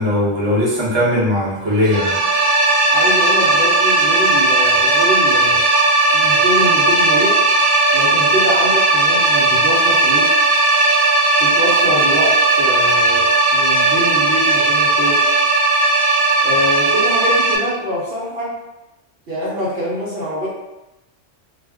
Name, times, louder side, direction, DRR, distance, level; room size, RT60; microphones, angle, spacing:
voice 1, 0.0-2.2, left 1 dB, 25° right, -7 dB, 0.7 m, -18 dB
sound 1, 1.8-17.6, right 2 dB, 85° right, 0.9 m, -15 dB
voice 2, 2.9-5.6 6.1-7.4 7.9-10.4 11.4-15.2 16.4-18.5 19.3-20.5, equal, 60° right, -8 dB, 0.9 m, -24 dB
2.4 x 2.1 x 3.4 m, 1.0 s
omnidirectional pair, 1.3 m